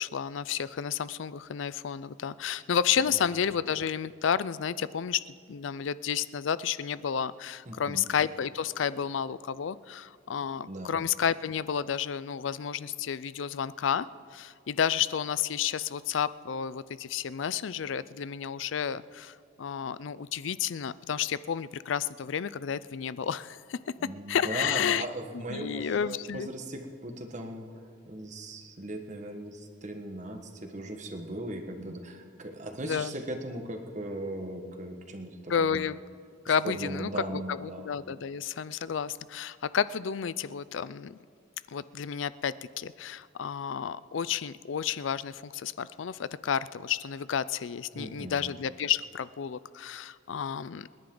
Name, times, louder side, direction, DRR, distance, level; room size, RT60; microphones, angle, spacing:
voice 1, 0.0-14.1 14.3-23.8 24.3-25.1 25.3-26.5 32.8-33.1 35.5-36.0 36.5-41.2 41.7-50.9, left 7 dB, 80° left, 17 dB, 0.4 m, -31 dB
voice 2, 7.7-8.1 10.7-11.0 24.0-35.8 36.4-37.9 47.9-48.4, right 1 dB, 40° right, 4 dB, 1.4 m, -38 dB
29.0 x 10.5 x 3.9 m, 2.1 s
head